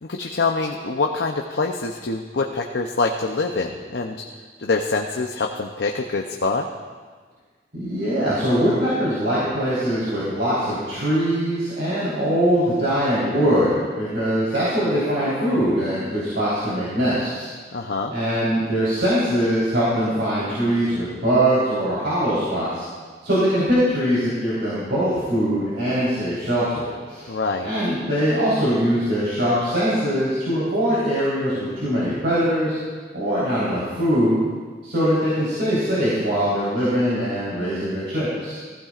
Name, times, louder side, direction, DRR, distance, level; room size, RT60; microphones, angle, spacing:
voice 1, 0.0-4.2 4.6-6.7 17.7-18.1 27.3-27.7, left 3 dB, 75° left, 2 dB, 0.7 m, -25 dB
voice 2, 7.7-17.5 18.1-22.9 23.2-27.3 27.6-32.8 33.1-34.4 34.8-38.6, equal, 85° right, -10 dB, 3.8 m, -22 dB
15.5 x 15.0 x 2.5 m, 1.5 s
head